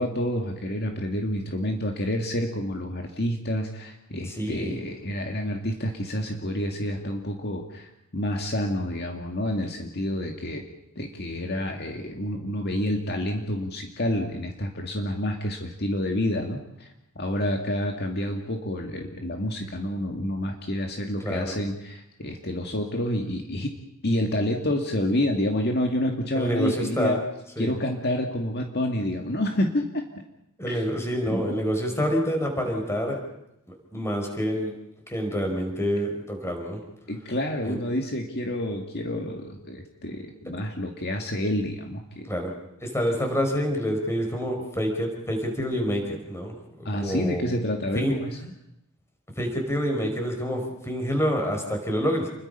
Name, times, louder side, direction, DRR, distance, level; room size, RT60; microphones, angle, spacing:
voice 1, 0.0-10.6 11.0-16.9 17.2-23.8 24.0-27.2 27.6-30.1 30.7-30.8 31.3-31.6 37.1-42.3 46.8-48.5, left 1 dB, 50° left, 3 dB, 2.2 m, -28 dB
voice 2, 4.3-4.8 21.2-21.5 26.3-27.2 27.6-27.7 30.6-33.2 33.7-34.7 35.1-36.8 37.6-37.8 42.3-42.5 42.8-47.5 47.9-48.2 49.4-52.3, equal, 10° left, 3 dB, 5.0 m, -27 dB
29.5 x 22.0 x 5.6 m, 0.84 s
head